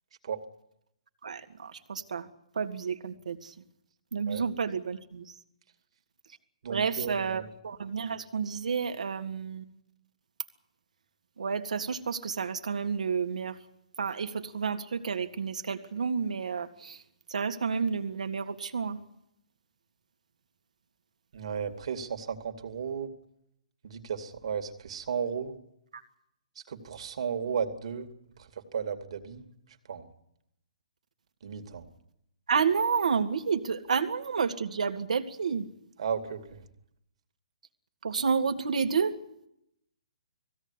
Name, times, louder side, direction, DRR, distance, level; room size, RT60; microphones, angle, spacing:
voice 1, 1.2-2.3 2.6-3.5 4.1-5.3 6.7-9.7 11.4-13.6 14.0-17.0 17.3-19.0 25.9-26.0 32.5-35.7 38.0-39.2, right 6 dB, 80° right, 6 dB, 2.2 m, -30 dB
voice 2, 6.6-7.4 21.3-23.1 23.8-25.5 26.7-28.1 28.7-29.4 29.9-30.1 31.4-31.8 36.0-36.6, right 7 dB, 55° right, 6 dB, 2.7 m, -34 dB
20.0 x 16.5 x 9.9 m, 0.80 s
hypercardioid pair, 165°, 4 cm